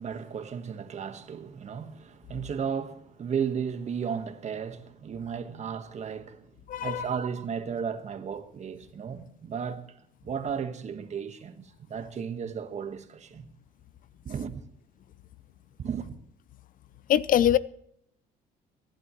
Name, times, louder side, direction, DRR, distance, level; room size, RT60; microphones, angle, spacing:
voice 1, 0.0-6.5 6.8-9.9 10.2-13.5 14.2-14.6 15.8-16.2, right 7 dB, 45° right, 1.4 m, -34 dB
voice 2, 6.7-7.0 17.1-17.6, left 11 dB, 55° left, 0.5 m, -22 dB
25.0 x 12.0 x 3.1 m
cardioid pair, 110°, 17 cm